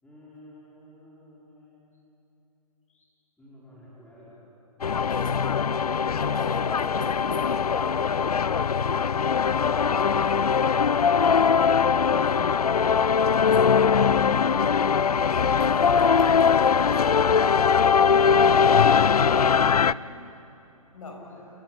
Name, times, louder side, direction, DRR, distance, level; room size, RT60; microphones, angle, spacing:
voice 1, 0.0-1.9 3.4-4.4 19.6-20.2 21.2-21.4, left 1 dB, 5° left, -8 dB, 5.2 m, -50 dB
sound 1, 4.8-19.9, left 6 dB, 80° left, 0.5 m, -21 dB
voice 2, 6.2-7.5 13.5-13.6 15.3-17.5 20.9-21.2, left 3 dB, 60° left, 1 dB, 6.7 m, -38 dB
28.5 x 15.5 x 9.7 m, 3.0 s
figure-of-eight pair, 130°, 19 cm